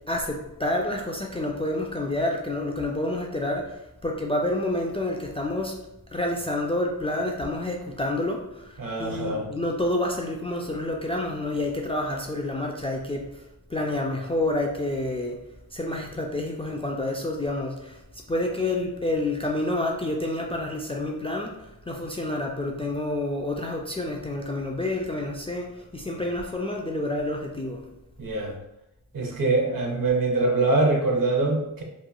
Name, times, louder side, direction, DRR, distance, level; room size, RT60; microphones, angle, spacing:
voice 1, 0.1-5.8 6.1-15.4 15.7-27.8, left 1 dB, 15° left, 0 dB, 0.3 m, -29 dB
voice 2, 8.8-9.4 28.2-28.5 29.1-31.8, right 2 dB, 65° right, 0 dB, 0.7 m, -24 dB
2.9 x 2.3 x 2.3 m, 0.89 s
cardioid pair, 60°, 37 cm